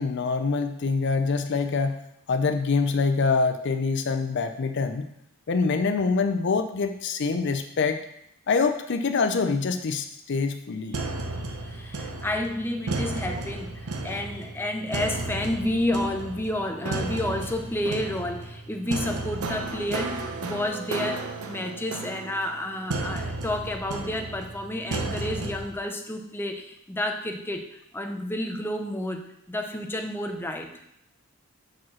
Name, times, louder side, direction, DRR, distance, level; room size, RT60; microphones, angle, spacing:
voice 1, 0.0-1.9 2.3-5.0 5.5-8.0 8.5-10.9, left 4 dB, 55° left, 8 dB, 0.5 m, -25 dB
sound 1, 10.9-25.7, right 2 dB, 85° right, 0.8 m, -33 dB
voice 2, 11.3-30.7, left 1 dB, 10° left, 4 dB, 0.6 m, -30 dB
5.7 x 4.9 x 6.2 m, 0.76 s
head